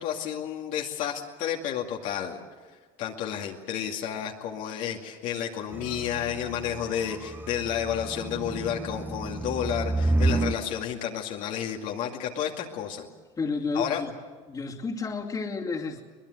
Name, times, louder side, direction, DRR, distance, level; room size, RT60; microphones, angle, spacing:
voice 1, 0.0-2.4 3.0-13.1 13.7-14.0, left 9 dB, 65° left, 1 dB, 2.4 m, -31 dB
sound 1, 5.7-10.6, right 2 dB, 15° right, 0.8 m, -30 dB
voice 2, 13.4-14.1 14.5-16.0, left 4 dB, 25° left, 0 dB, 2.6 m, -31 dB
23.0 x 20.5 x 8.0 m, 1.4 s
supercardioid pair, 115°, 14 cm